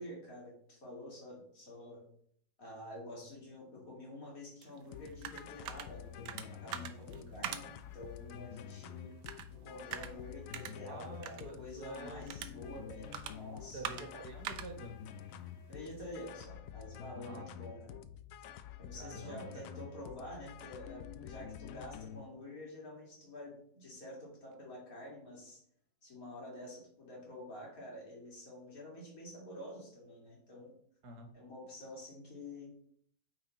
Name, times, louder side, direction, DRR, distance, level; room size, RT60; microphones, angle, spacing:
voice 1, 0.0-2.0 2.6-7.7 7.9-9.2 9.5-14.1 15.7-18.0 18.8-25.6 26.0-30.7 31.3-32.9, left 1 dB, 55° left, -3 dB, 3.0 m, -48 dB
sound 1, 4.6-16.3, right 9 dB, 90° right, 1.3 m, -47 dB
sound 2, 4.9-22.2, left 10 dB, 70° left, 0.8 m, -49 dB
voice 2, 10.9-12.3 13.7-15.0 17.2-17.7 18.9-19.9 31.0-31.3, right 2 dB, 65° right, 4 dB, 1.7 m, -48 dB
9.0 x 4.1 x 4.1 m, 0.62 s
omnidirectional pair, 1.8 m